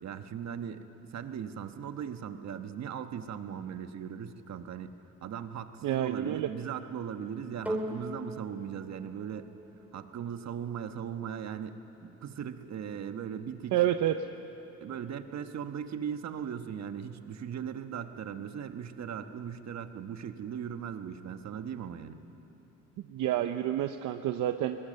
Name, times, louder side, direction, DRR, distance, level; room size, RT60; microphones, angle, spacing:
voice 1, 0.0-0.8 1.1-9.5 9.9-11.7 12.0-13.8 14.8-22.2, right 8 dB, 60° right, 8 dB, 1.3 m, -38 dB
voice 2, 5.8-6.5 13.7-14.2 23.1-24.8, right 12 dB, 80° right, 8 dB, 0.8 m, -28 dB
sound 1, 7.7-16.2 16.9-17.0, right 1 dB, 5° right, 3.3 m, -43 dB
21.5 x 19.5 x 7.7 m, 3.0 s
cardioid pair, 90°, 30 cm